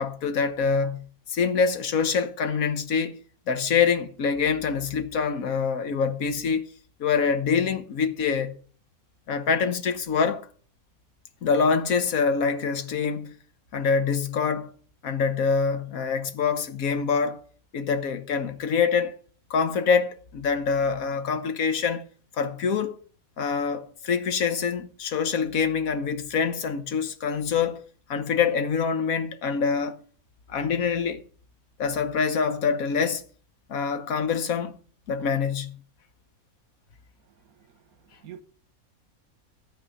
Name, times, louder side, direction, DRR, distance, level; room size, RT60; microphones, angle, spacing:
voice 1, 0.0-3.2 3.5-6.7 7.0-8.5 9.3-10.5 11.4-13.4 13.7-14.7 15.0-17.4 17.7-19.1 19.5-22.1 22.3-22.9 23.4-30.0 30.5-31.2 31.8-33.2 33.7-34.8 35.1-35.8, left 6 dB, 75° left, 1.4 m, -25 dB
voice 2, 38.0-38.4, right 10 dB, 85° right, 1.4 m, -45 dB
12.5 x 4.4 x 6.9 m
omnidirectional pair, 1.5 m